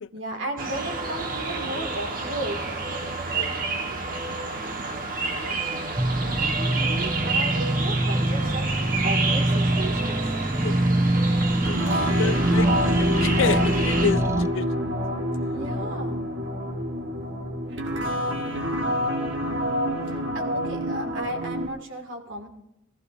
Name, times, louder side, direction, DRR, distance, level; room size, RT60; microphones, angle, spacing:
voice 1, 0.1-2.7 3.8-4.0 6.2-8.7 9.0-10.3 15.5-16.3 20.1-22.5, right 1 dB, 75° right, 2.2 m, -35 dB
sound 1, 0.6-14.1, right 3 dB, 45° right, 1.3 m, -30 dB
sound 2, 6.0-14.5, right 1 dB, 15° right, 0.4 m, -24 dB
voice 2, 11.6-14.7 20.1-20.3, left 6 dB, 75° left, 0.4 m, -30 dB
sound 3, 11.6-21.7, equal, 60° right, 1.6 m, -27 dB
22.5 x 14.5 x 2.6 m
head